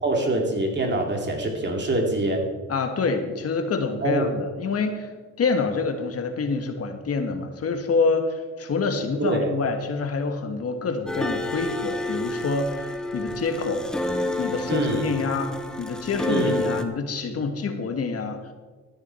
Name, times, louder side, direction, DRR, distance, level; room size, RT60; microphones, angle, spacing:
voice 1, 0.0-2.5 4.0-4.3 9.2-9.5 14.7-15.1 16.3-16.6, right 2 dB, 35° right, 2 dB, 2.7 m, -24 dB
voice 2, 2.7-5.1 5.4-13.9 14.4-18.5, left 4 dB, 50° left, 6 dB, 1.7 m, -27 dB
sound 1, 11.1-16.8, left 1 dB, ahead, 0.9 m, -29 dB
13.5 x 9.9 x 4.5 m, 1.4 s
cardioid pair, 90°, 30 cm